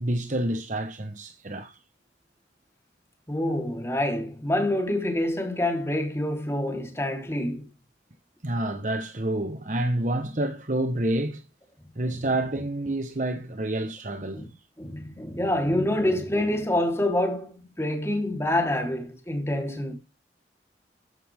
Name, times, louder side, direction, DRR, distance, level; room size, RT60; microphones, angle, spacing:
voice 1, 0.0-1.8 8.4-11.4 11.9-14.4, right 1 dB, 45° right, 1.1 m, -28 dB
voice 2, 3.3-7.7 14.3-14.5 14.8-19.9, left 1 dB, 15° left, 3.6 m, -26 dB
14.5 x 11.5 x 3.6 m
head